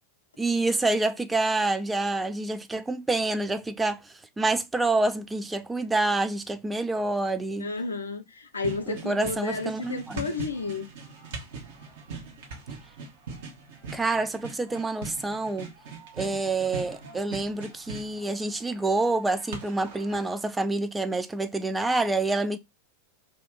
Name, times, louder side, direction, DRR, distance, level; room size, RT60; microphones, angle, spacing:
voice 1, 0.4-4.0 4.4-7.7 8.9-10.2 13.9-15.7 16.2-22.6, right 2 dB, 10° right, 0.3 m, -27 dB
voice 2, 7.6-10.9, left 3 dB, 75° left, 0.5 m, -32 dB
sound 1, 8.5-20.4, right 4 dB, 55° right, 0.9 m, -42 dB
2.7 x 2.5 x 3.4 m
figure-of-eight pair, 90°, 0 cm